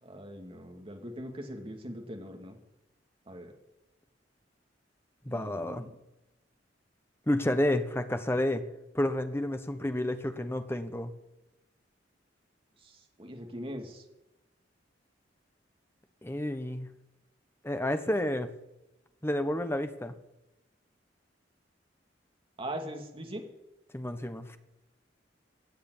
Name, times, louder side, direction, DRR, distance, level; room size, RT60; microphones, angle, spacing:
voice 1, 0.0-2.6 3.3-3.5 5.3-5.9 12.8-14.0 22.6-23.4, equal, 30° right, 3 dB, 2.6 m, -41 dB
voice 2, 5.2-5.9 7.3-8.6 8.9-11.1 16.2-16.9 17.6-18.5 19.2-20.1 23.9-24.6, left 1 dB, 15° left, 9 dB, 1.2 m, -30 dB
16.0 x 7.8 x 9.6 m, 0.92 s
head